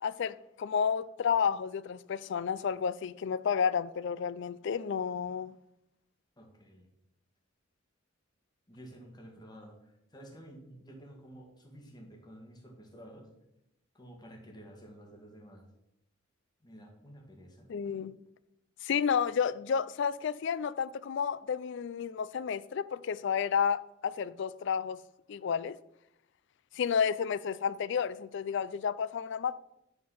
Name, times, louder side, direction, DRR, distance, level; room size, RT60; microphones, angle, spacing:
voice 1, 0.0-5.5 17.7-18.1 18.8-25.0 25.3-25.8 26.7-29.6, left 7 dB, 65° left, 0.4 m, -31 dB
voice 2, 6.4-6.9 8.7-13.3 13.9-15.7 16.6-17.7, equal, 20° left, 1.8 m, -51 dB
10.0 x 4.5 x 5.6 m
head